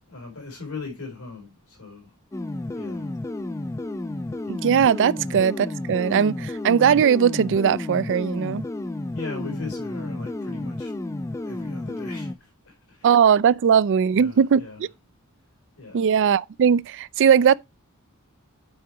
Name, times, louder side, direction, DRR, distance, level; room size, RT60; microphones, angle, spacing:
voice 1, 0.1-2.1 2.7-3.1 5.1-5.3 9.1-10.9 11.4-13.1 14.1-14.8 15.8-16.0, left 3 dB, 85° left, 4.2 m, -39 dB
sound 1, 2.3-12.4, left 2 dB, 15° left, 0.4 m, -32 dB
voice 2, 4.5-8.6 13.0-14.9 15.9-17.5, right 7 dB, 55° right, 0.4 m, -19 dB
8.8 x 4.7 x 4.8 m
head